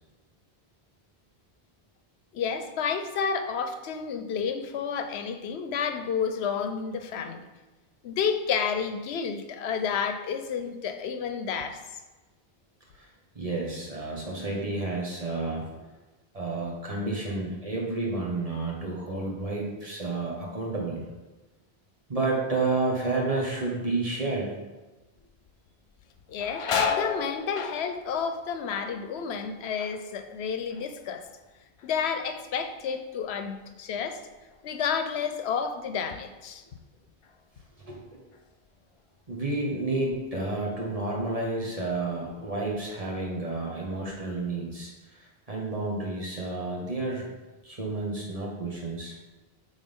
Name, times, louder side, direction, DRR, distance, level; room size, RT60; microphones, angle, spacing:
voice 1, 2.3-7.4 8.0-11.8 26.3-31.3 31.8-34.2 34.6-36.6, left 6 dB, 85° left, 8 dB, 0.9 m, -30 dB
voice 2, 13.3-15.6 16.3-21.1 22.1-24.5 37.8-38.0 39.3-47.2 47.6-49.1, right 2 dB, 35° right, -2 dB, 1.5 m, -30 dB
sound 1, 25.2-25.6 25.9-31.5 31.8-32.4 32.9-35.8 36.1-36.3 37.2-37.4 37.9-39.0 39.4-39.6 40.2-40.8 41.2-42.3, left 6 dB, 60° left, 0.3 m, -35 dB
9.3 x 3.9 x 3.6 m, 1.2 s
omnidirectional pair, 1.1 m